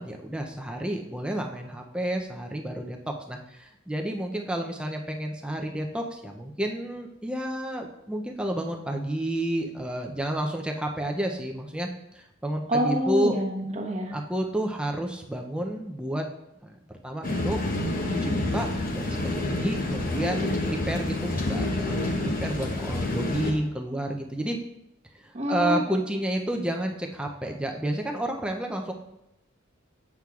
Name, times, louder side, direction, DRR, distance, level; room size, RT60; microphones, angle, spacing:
voice 1, 0.0-3.0 3.3-13.4 14.1-16.3 16.6-16.8 17.0-17.7 18.1-18.7 18.9-24.6 25.1-28.9, right 1 dB, 5° right, 2 dB, 0.4 m, -30 dB
voice 2, 12.7-14.1 25.3-25.8, right 1 dB, 30° right, 1 dB, 0.9 m, -26 dB
sound 1, 17.2-23.5, left 2 dB, 40° left, 0.8 m, -28 dB
8.2 x 6.1 x 2.3 m, 0.86 s
head